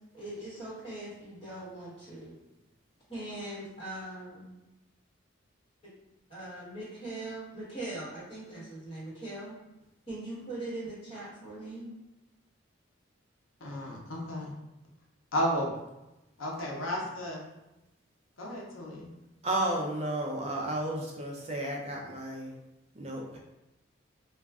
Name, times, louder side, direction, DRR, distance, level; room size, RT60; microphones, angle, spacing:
voice 1, 0.1-2.4 3.1-4.5 6.3-9.5 10.1-12.0, right 2 dB, 30° left, -9 dB, 1.2 m, -41 dB
voice 2, 13.6-14.5 15.3-15.7 16.4-17.4 18.4-19.1, equal, 80° left, -2 dB, 0.6 m, -33 dB
voice 3, 19.4-22.6 22.9-23.4, right 1 dB, 30° right, -1 dB, 0.4 m, -33 dB
2.3 x 2.3 x 3.4 m, 0.94 s
head